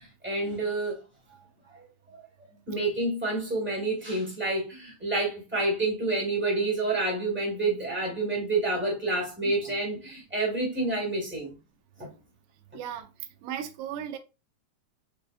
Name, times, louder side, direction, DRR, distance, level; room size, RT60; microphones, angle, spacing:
voice 1, 0.2-1.0 2.1-2.2 2.7-11.5 12.0-12.1, right 2 dB, 10° right, 0.7 m, -28 dB
voice 2, 9.4-9.8 12.7-13.1 13.4-14.2, right 9 dB, 80° right, 1.3 m, -36 dB
5.2 x 3.3 x 2.5 m
omnidirectional pair, 3.4 m